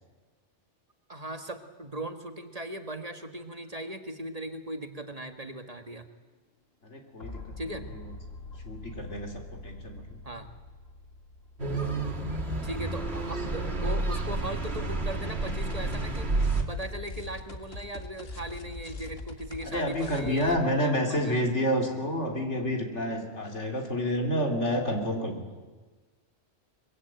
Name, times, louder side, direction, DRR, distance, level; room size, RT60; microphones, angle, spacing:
voice 1, 1.1-6.1 7.6-7.9 10.2-10.5 12.6-21.3, right 1 dB, 35° right, 7 dB, 1.6 m, -38 dB
sound 1, 5.4-5.5 7.2-13.0 15.5-23.0, left 2 dB, 60° left, 2.2 m, -44 dB
voice 2, 6.8-8.1 8.6-10.2 19.6-25.6, equal, 80° left, 3 dB, 3.9 m, -29 dB
sound 2, 11.6-16.6, right 2 dB, 65° right, 2.5 m, -30 dB
23.5 x 22.5 x 9.0 m, 1.3 s
omnidirectional pair, 1.2 m